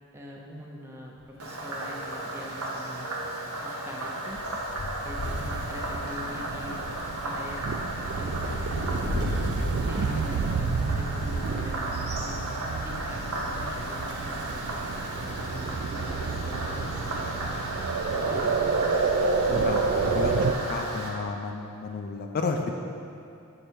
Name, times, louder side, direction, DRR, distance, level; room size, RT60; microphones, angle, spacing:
voice 1, 0.1-3.1 3.6-4.4 5.0-9.1 9.6-14.6 15.2-17.6 18.1-18.7, equal, 10° right, -2 dB, 0.6 m, -43 dB
sound 1, 1.2-1.4 1.7-1.8 2.2-11.7 12.4-13.7 14.4-14.5 14.7-14.8 16.5-16.7 17.3-17.5 17.9-19.2, left 2 dB, 85° left, 0.6 m, -38 dB
Frog, 1.4-21.1, right 1 dB, 80° right, 1.0 m, -35 dB
sound 2, 5.2-20.5, right 4 dB, 55° right, 0.3 m, -30 dB
voice 2, 19.5-20.3 20.7-22.8, left 4 dB, 45° left, 3 dB, 0.3 m, -32 dB
6.6 x 4.6 x 4.4 m, 2.5 s
head